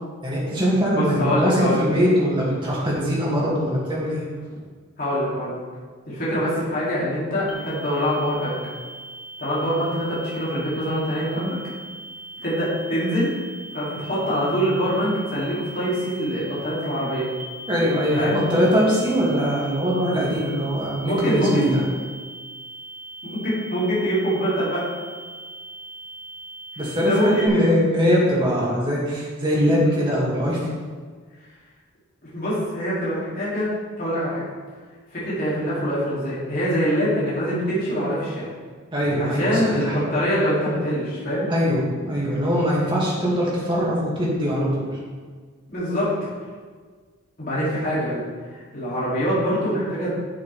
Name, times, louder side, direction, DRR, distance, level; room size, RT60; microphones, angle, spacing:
voice 1, 0.2-4.2 17.7-21.8 26.8-30.6 38.9-39.9 41.5-45.0, equal, 20° right, -6 dB, 2.4 m, -22 dB
voice 2, 0.9-1.8 5.0-5.6 6.1-8.6 9.4-11.6 12.4-13.3 13.7-17.3 18.2-18.4 21.0-21.6 23.2-24.8 27.0-27.7 32.3-33.7 34.0-34.4 35.1-38.5 39.2-41.5 45.7-46.1 47.4-50.1, equal, 40° left, -10 dB, 2.9 m, -24 dB
sound 1, 7.5-27.5, right 2 dB, 75° right, 1.5 m, -40 dB
9.5 x 7.7 x 3.5 m, 1.5 s
head